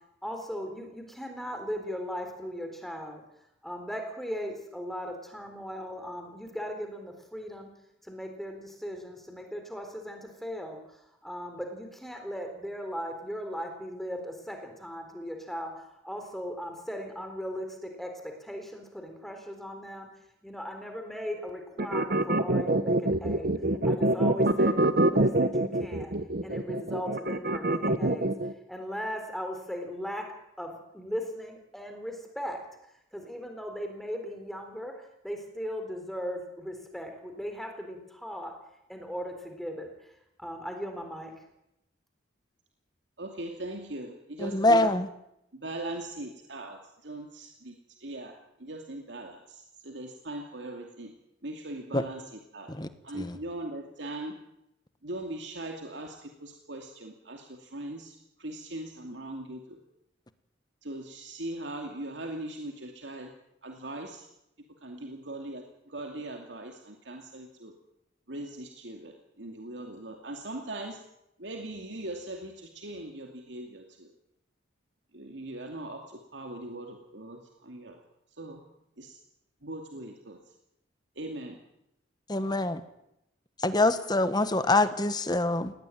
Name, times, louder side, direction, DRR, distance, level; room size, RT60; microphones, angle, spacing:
voice 1, 0.2-3.2 3.6-7.7 8.0-10.8 11.2-20.1 20.4-23.5 23.8-26.2 26.4-28.3 28.7-30.2 30.6-32.6 33.1-34.9 35.2-38.5 38.9-39.9 40.4-41.3, equal, ahead, 4 dB, 3.8 m, -38 dB
sound 1, 21.8-28.5, right 1 dB, 55° right, 1.2 m, -25 dB
voice 2, 43.2-44.9 45.5-51.1 51.4-52.7 53.0-54.4 55.0-59.8 60.8-63.3 63.6-64.3 64.8-67.7 68.3-71.0 71.4-74.1 75.1-78.0 78.4-78.6 79.0-79.2 79.6-80.4 81.2-81.6, right 1 dB, 70° right, 2 dB, 2.5 m, -40 dB
voice 3, 44.4-45.1 51.9-52.0 52.7-52.9 53.1-53.4 82.3-82.8 83.6-85.7, left 2 dB, 20° left, 11 dB, 1.3 m, -25 dB
19.5 x 18.0 x 9.2 m, 0.82 s
head